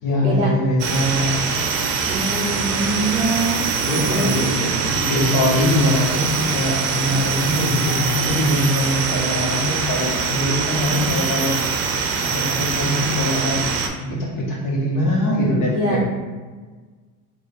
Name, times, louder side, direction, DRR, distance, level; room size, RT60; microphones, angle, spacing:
voice 1, 0.0-1.3 3.8-11.5 12.2-13.6 14.0-16.0, left 1 dB, 55° left, -3 dB, 1.3 m, -22 dB
sound 1, 0.8-13.9, right 5 dB, 90° right, 0.6 m, -23 dB
voice 2, 2.0-3.6 4.1-4.7 15.7-16.0, right 1 dB, 20° right, -4 dB, 0.8 m, -24 dB
3.8 x 2.5 x 3.6 m, 1.4 s
cardioid pair, 115°, 38 cm